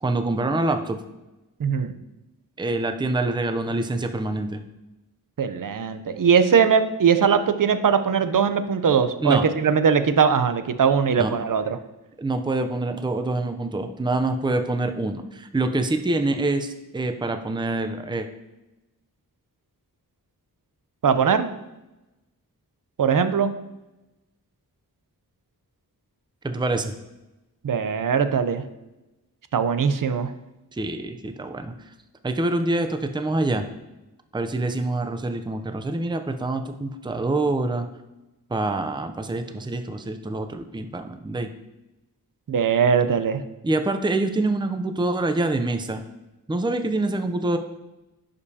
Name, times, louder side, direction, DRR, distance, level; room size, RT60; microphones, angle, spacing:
voice 1, 0.0-1.0 2.6-4.6 9.2-9.4 11.1-11.3 12.2-18.3 26.4-26.9 30.7-31.7 32.2-33.7 34.3-37.9 38.5-41.5 43.6-46.0 46.5-47.6, right 2 dB, 10° right, 7 dB, 0.6 m, -25 dB
voice 2, 1.6-1.9 5.4-11.8 21.0-21.5 23.0-23.5 27.6-28.6 29.5-30.3 42.5-43.4, right 6 dB, 60° right, 10 dB, 0.7 m, -20 dB
11.0 x 5.2 x 2.8 m, 0.99 s
wide cardioid pair, 70°, 37 cm